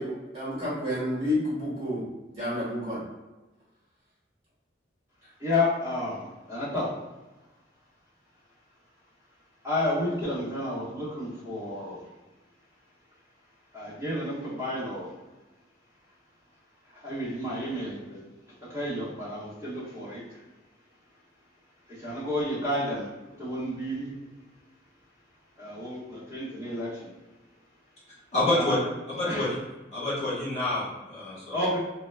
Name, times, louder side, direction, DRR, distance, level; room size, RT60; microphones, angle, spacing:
voice 1, 0.0-2.0 2.3-3.0, left 1 dB, 35° right, -9 dB, 1.5 m, -30 dB
voice 2, 5.4-6.9 9.6-12.0 13.7-15.1 17.0-18.2 18.7-20.4 22.0-23.1 23.4-24.1 25.6-27.1 28.5-28.8 29.2-29.5 31.5-31.8, left 1 dB, 15° right, -10 dB, 1.2 m, -31 dB
voice 3, 28.3-28.8 29.2-29.5 29.9-31.6, left 2 dB, 35° left, -8 dB, 1.2 m, -27 dB
3.9 x 2.2 x 2.2 m, 1.1 s
head